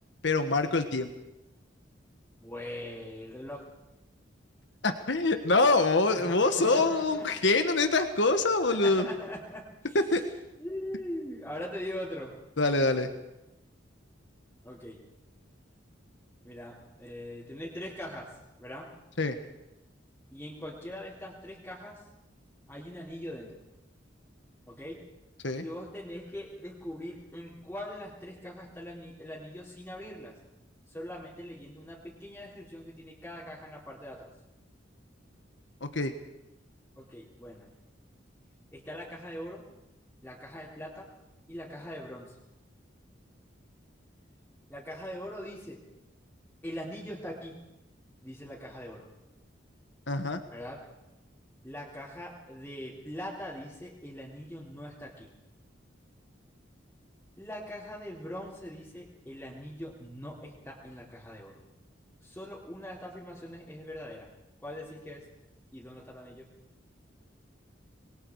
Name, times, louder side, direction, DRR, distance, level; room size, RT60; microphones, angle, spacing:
voice 1, 0.2-1.1 4.8-9.1 9.9-10.2 12.6-13.1 19.2-19.3 25.4-25.6 35.8-36.1 50.1-50.4, left 3 dB, 70° left, 7 dB, 1.5 m, -25 dB
voice 2, 2.4-3.7 6.1-7.3 8.7-10.0 10.6-12.3 14.6-15.0 16.4-18.3 18.6-18.9 20.3-22.0 22.7-23.6 24.7-25.0 25.6-30.3 30.9-34.3 37.0-37.7 38.7-39.6 40.2-41.1 41.5-42.3 44.7-45.8 46.6-47.6 48.2-49.1 50.5-50.8 51.6-55.3 57.4-61.6 62.2-64.3 64.6-65.2 65.7-66.5, equal, 10° left, -8 dB, 3.8 m, -41 dB
27.0 x 22.0 x 4.8 m, 0.96 s
head